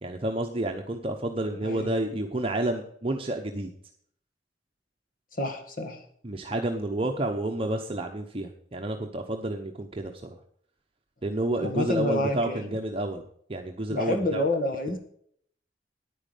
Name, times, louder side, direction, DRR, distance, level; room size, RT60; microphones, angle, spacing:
voice 1, 0.0-3.7 6.2-10.1 11.2-13.2 13.5-14.4, right 1 dB, 30° right, 3 dB, 0.9 m, -30 dB
voice 2, 5.4-6.0 11.6-12.7 13.9-15.0, left 1 dB, 50° left, 5 dB, 1.9 m, -28 dB
10.0 x 9.6 x 5.1 m, 0.64 s
head